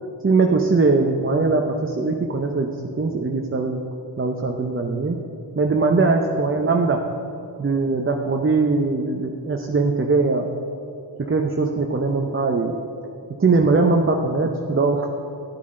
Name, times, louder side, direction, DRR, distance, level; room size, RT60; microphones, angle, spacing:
voice 1, 0.2-3.8 4.2-5.2 5.6-7.0 7.6-10.5 11.3-12.8 13.4-15.1, right 3 dB, 30° right, 2 dB, 0.8 m, -21 dB
11.0 x 11.0 x 3.8 m, 2.5 s
cardioid pair, 70°, 42 cm